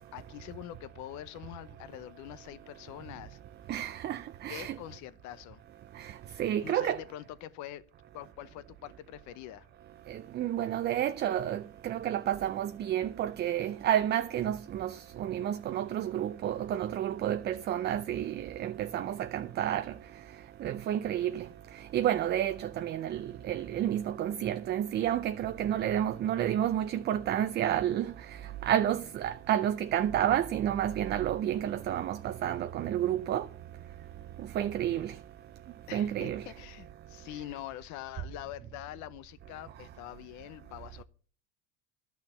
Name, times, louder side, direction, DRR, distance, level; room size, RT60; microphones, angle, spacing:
voice 1, 0.1-3.4 4.5-5.6 6.6-7.8 8.1-9.7 35.9-41.0, left 13 dB, 55° left, 0.9 m, -44 dB
voice 2, 3.7-4.8 6.0-6.1 6.4-7.0 10.1-19.9 20.6-21.5 21.9-28.1 28.6-33.5 34.5-35.1 35.9-36.4, right 11 dB, 30° right, 0.5 m, -30 dB
12.0 x 6.2 x 6.9 m
supercardioid pair, 110°, 35 cm